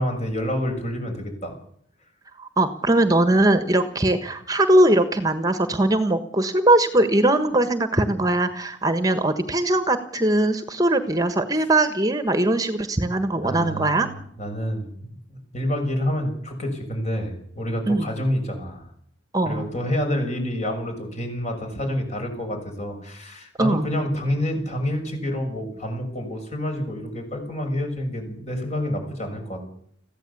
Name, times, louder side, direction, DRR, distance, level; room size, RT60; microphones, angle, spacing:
voice 1, 0.0-1.5 13.4-18.9 19.4-29.6, equal, 40° left, 4 dB, 6.6 m, -28 dB
voice 2, 2.4-14.1 17.9-18.1 19.3-19.7 23.6-23.9, right 1 dB, 20° right, 10 dB, 1.4 m, -20 dB
22.0 x 15.5 x 8.5 m, 0.67 s
head